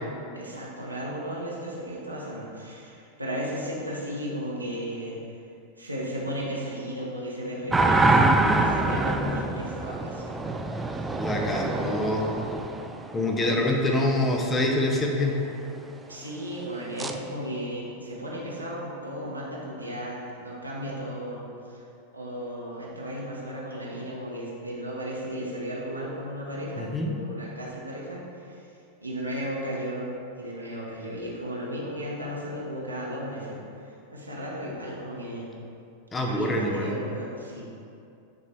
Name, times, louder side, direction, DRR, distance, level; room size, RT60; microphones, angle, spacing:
voice 1, 0.0-5.2 5.8-10.6 13.4-13.7 16.1-21.8 22.1-28.7 29.0-35.5 36.3-37.6, equal, 85° right, -5 dB, 1.0 m, -35 dB
sound 1, 7.7-13.5 17.0-17.2, right 2 dB, 10° right, 0.3 m, -25 dB
voice 2, 11.2-12.3 13.1-15.3 26.8-27.1 36.1-36.9, left 1 dB, 15° left, 0 dB, 0.7 m, -25 dB
8.5 x 3.9 x 3.4 m, 2.6 s
figure-of-eight pair, 90°, 0 cm